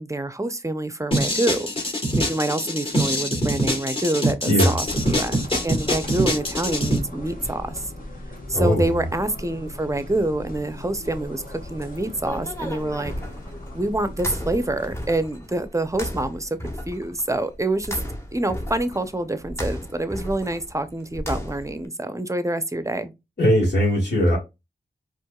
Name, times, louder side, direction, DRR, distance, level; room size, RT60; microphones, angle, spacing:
voice 1, 0.0-1.9 2.2-7.9 8.5-13.1 13.7-18.0 18.3-23.1, right 2 dB, 15° right, 0.6 m, -26 dB
sound 1, 1.1-7.0, equal, 30° left, 1.7 m, -24 dB
voice 2, 4.4-4.8 8.5-9.0 23.4-24.4, equal, 70° left, 1.7 m, -19 dB
sound 2, 4.9-14.9, left 1 dB, 50° left, 1.4 m, -38 dB
sound 3, 11.7-21.9, equal, 15° left, 1.0 m, -35 dB
4.4 x 2.5 x 2.3 m
cardioid pair, 40°, 18 cm